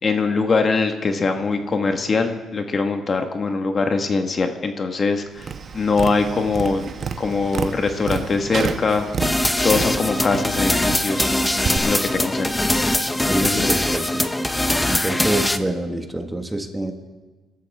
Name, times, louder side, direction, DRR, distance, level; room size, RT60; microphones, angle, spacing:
voice 1, 0.0-5.5 5.7-6.9 7.2-9.0 9.6-11.3 11.8-12.7 13.2-13.8, left 4 dB, 40° left, 5 dB, 1.5 m, -22 dB
Tap, 5.4-11.8, right 5 dB, 50° right, 1.0 m, -30 dB
sound 1, 9.2-15.6, left 1 dB, 10° left, 0.8 m, -21 dB
voice 2, 13.3-14.2 14.9-16.9, right 1 dB, 15° right, 5 dB, 1.6 m, -26 dB
24.0 x 13.0 x 3.6 m, 1.3 s
cardioid pair, 90°, 0 cm